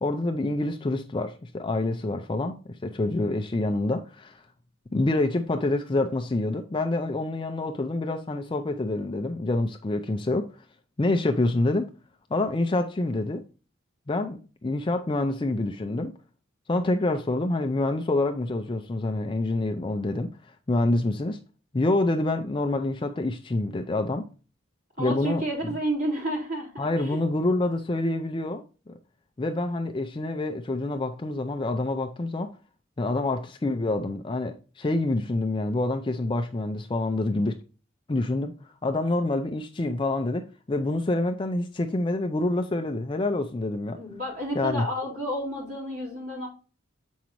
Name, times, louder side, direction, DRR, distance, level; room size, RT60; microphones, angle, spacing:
voice 1, 0.0-4.4 4.9-10.5 11.0-11.9 12.3-13.4 14.1-16.1 16.7-21.4 21.7-24.3 25.0-25.7 26.8-28.6 29.4-32.5 33.0-37.6 38.1-38.5 38.8-44.0 44.6-44.9, left 2 dB, 25° left, 0.4 m, -27 dB
voice 2, 25.0-27.2 44.0-46.5, equal, 45° right, 3.6 m, -31 dB
7.1 x 5.1 x 2.9 m
head